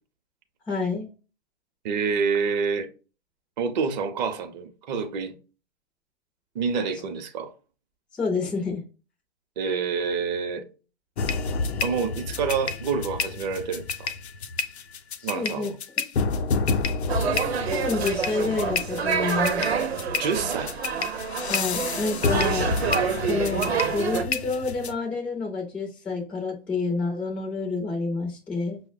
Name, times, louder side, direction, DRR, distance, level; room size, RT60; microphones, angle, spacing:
voice 1, 0.7-1.1 8.1-8.8 15.2-15.7 16.0-16.1 17.7-19.6 21.5-22.7 23.3-28.8, left 4 dB, 5° left, 0.3 m, -28 dB
voice 2, 1.8-2.9 3.6-5.4 6.5-7.5 9.6-10.6 11.8-14.1 15.2-15.8 20.2-20.7 22.3-22.5, right 5 dB, 45° right, 0.6 m, -27 dB
sound 1, 11.2-24.9, left 4 dB, 90° left, 0.5 m, -29 dB
sound 2, 17.1-24.2, right 6 dB, 80° right, 0.8 m, -27 dB
5.5 x 2.1 x 2.5 m
hypercardioid pair, 125°, 32 cm